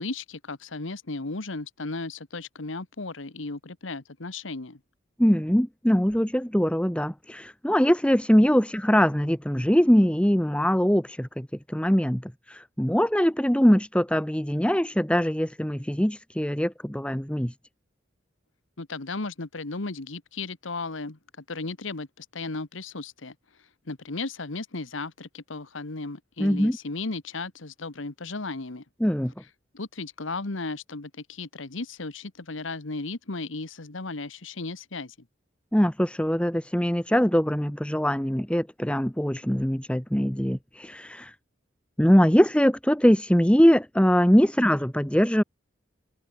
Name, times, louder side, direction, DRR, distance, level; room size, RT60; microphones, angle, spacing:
voice 1, 0.0-4.8 18.8-21.2 21.5-23.3 23.8-28.8 29.7-35.1, left 3 dB, 90° left, 1.5 m, -35 dB
voice 2, 5.2-17.5 26.4-26.8 29.0-29.3 35.7-41.3 42.0-45.4, equal, 5° left, 1.2 m, -22 dB
head